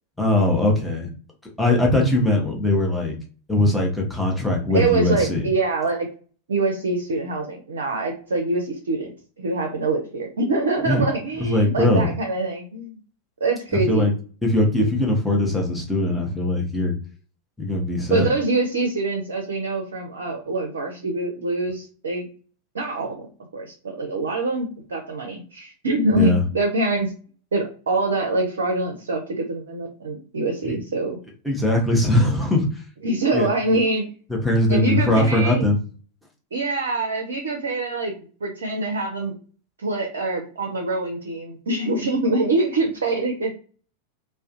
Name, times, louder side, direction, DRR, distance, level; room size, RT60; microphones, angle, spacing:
voice 1, 0.2-1.1 1.6-3.1 3.5-5.4 10.8-11.0 11.4-12.1 13.7-14.1 14.4-16.9 17.6-18.3 26.1-26.4 30.6-30.8 31.4-32.8 33.3-33.5 34.4-35.8, left 1 dB, ahead, -2 dB, 0.7 m, -20 dB
voice 2, 4.7-6.1 6.5-13.0 13.4-14.1 18.1-22.3 22.7-23.3 23.5-27.1 27.5-31.2 33.0-34.0 34.7-35.6 36.5-38.1 38.4-39.4 39.8-43.5, right 2 dB, 65° right, 2 dB, 0.5 m, -24 dB
2.3 x 2.1 x 2.5 m, 0.40 s
figure-of-eight pair, 90°, 0 cm